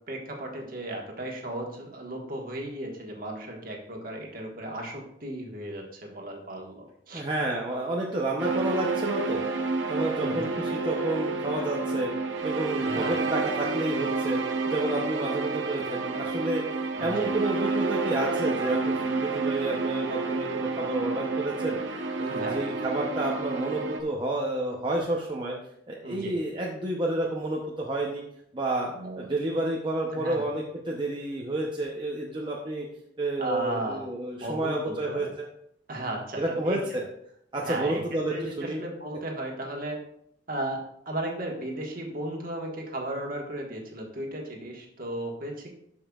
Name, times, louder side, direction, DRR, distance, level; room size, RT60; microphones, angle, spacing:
voice 1, 0.1-7.2 10.2-10.4 12.8-13.2 17.0-17.3 22.3-22.6 26.0-26.4 28.9-29.3 30.1-30.4 33.4-34.1 34.4-35.3 35.9-36.8 37.5-38.0 38.3-40.0 40.5-40.8 41.0-45.8, right 1 dB, 50° right, 0 dB, 1.5 m, -35 dB
voice 2, 7.1-9.5 9.9-12.1 12.4-14.4 14.7-25.5 25.9-28.2 28.5-28.9 29.2-32.9 33.2-35.5 36.4-37.0 37.5-38.8, right 2 dB, 25° right, -2 dB, 0.7 m, -30 dB
sound 1, 8.4-24.0, right 3 dB, 80° right, 0.9 m, -29 dB
12.0 x 5.5 x 2.4 m, 0.73 s
head